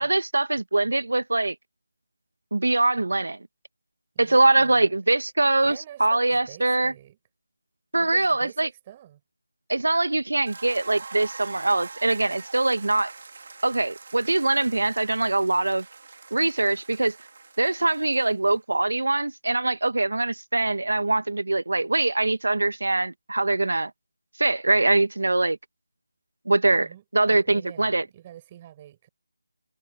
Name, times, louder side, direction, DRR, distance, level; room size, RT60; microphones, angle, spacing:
voice 1, 0.0-1.6 2.5-3.4 4.2-6.9 7.9-8.7 9.7-13.1 13.6-15.8 16.3-17.2 17.6-23.9 24.4-25.6 26.5-26.9 27.1-28.0, right 2 dB, 80° right, 1.8 m, -23 dB
voice 2, 4.1-4.9 5.6-7.2 8.0-9.2 26.7-29.1, right 12 dB, 20° right, 6.8 m, -46 dB
sound 1, 10.5-18.6, right 4 dB, 55° right, 3.0 m, -44 dB
figure-of-eight pair, 165°, 0 cm